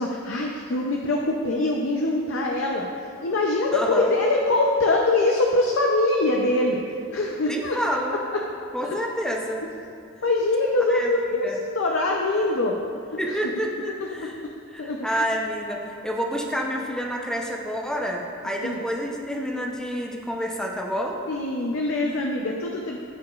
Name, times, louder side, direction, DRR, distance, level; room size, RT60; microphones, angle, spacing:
voice 1, 0.0-2.9 3.2-6.8 7.1-7.8 8.8-9.0 10.2-11.5 11.7-12.8 13.1-13.4 14.2-14.3 14.8-15.0 18.6-18.8 21.3-23.0, left 2 dB, 65° left, 0 dB, 0.5 m, -23 dB
voice 2, 3.7-4.1 7.5-8.2 8.7-9.6 10.9-11.1 11.4-11.6 13.2-14.4 14.7-21.2, equal, 5° left, 0 dB, 0.6 m, -28 dB
13.0 x 4.9 x 2.4 m, 2.6 s
head